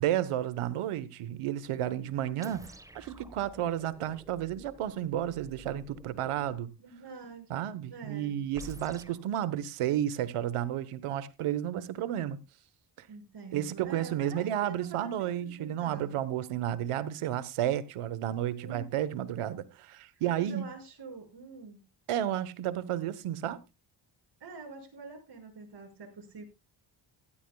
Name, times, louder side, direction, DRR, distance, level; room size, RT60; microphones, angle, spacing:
voice 1, 0.0-6.7 7.5-12.4 13.0-13.1 13.5-20.7 22.1-23.6, right 11 dB, 85° right, 1.2 m, -32 dB
sound 1, 2.4-6.7 8.5-9.3, right 2 dB, 5° right, 1.2 m, -50 dB
voice 2, 6.8-7.6 7.9-8.4 13.1-16.2 18.6-19.0 20.4-21.8 24.4-26.4, right 4 dB, 50° right, 6.1 m, -46 dB
16.0 x 13.0 x 2.3 m
cardioid pair, 65°, 50 cm